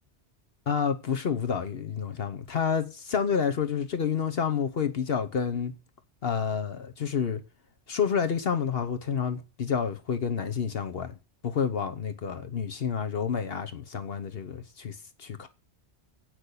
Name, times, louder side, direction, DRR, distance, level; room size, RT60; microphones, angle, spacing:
voice 1, 0.7-5.7 6.2-7.4 7.9-11.1 11.4-15.5, left 7 dB, 60° left, 1.1 m, -29 dB
8.3 x 6.1 x 8.2 m
omnidirectional pair, 1.2 m